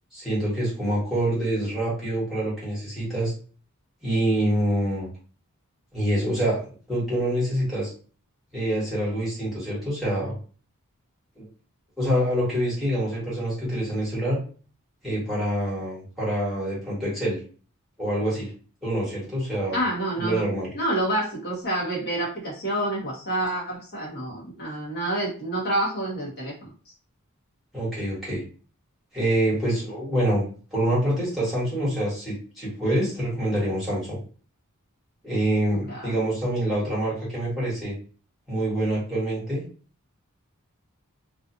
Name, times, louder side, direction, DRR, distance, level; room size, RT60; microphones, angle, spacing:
voice 1, 0.1-3.3 4.0-5.1 5.9-7.9 8.5-10.4 11.4-11.5 12.0-14.4 15.0-17.4 18.0-18.5 18.8-19.8 20.2-20.7 27.7-28.4 29.1-34.2 35.2-38.0 38.5-39.6, right 1 dB, ahead, -9 dB, 1.3 m, -26 dB
voice 2, 19.7-20.4 20.7-26.5 35.9-36.1, right 1 dB, 50° left, -5 dB, 0.9 m, -28 dB
2.5 x 2.4 x 2.5 m, 0.39 s
head